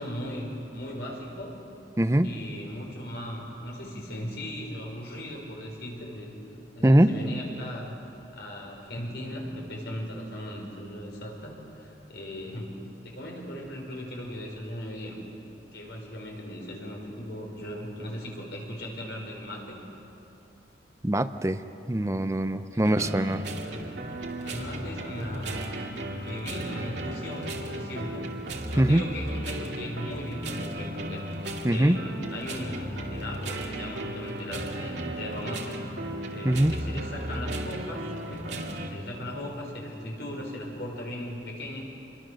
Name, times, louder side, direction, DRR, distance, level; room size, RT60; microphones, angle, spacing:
voice 1, 0.0-1.6 2.2-6.3 6.7-12.7 13.0-15.2 15.7-19.8 22.7-23.3 23.6-23.9 24.4-25.5 26.1-28.2 28.7-35.8 36.3-38.0 38.3-41.9, left 1 dB, 70° left, -1 dB, 5.4 m, -38 dB
voice 2, 2.0-2.3 6.8-7.1 21.0-21.6 21.9-23.4 28.8-29.0 31.6-32.0 36.4-36.7, right 1 dB, 15° right, 9 dB, 0.6 m, -22 dB
sound 1, 22.8-38.9, right 1 dB, 75° right, 2.3 m, -35 dB
26.5 x 23.0 x 6.4 m, 2.9 s
head